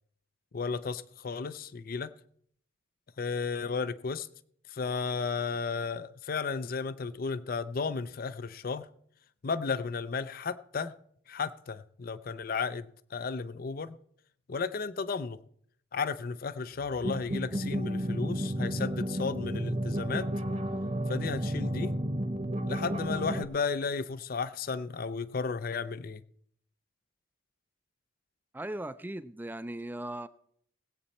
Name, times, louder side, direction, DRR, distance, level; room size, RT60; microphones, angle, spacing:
voice 1, 0.5-2.1 3.2-4.3 4.7-8.9 9.4-10.9 11.3-14.0 14.5-15.4 15.9-20.3 21.1-21.9 22.7-26.2, left 5 dB, 50° left, 0.5 m, -34 dB
sound 1, 17.0-23.4, equal, 35° right, 1.0 m, -32 dB
voice 2, 28.5-30.3, right 1 dB, 10° right, 0.4 m, -38 dB
19.0 x 8.4 x 4.2 m
head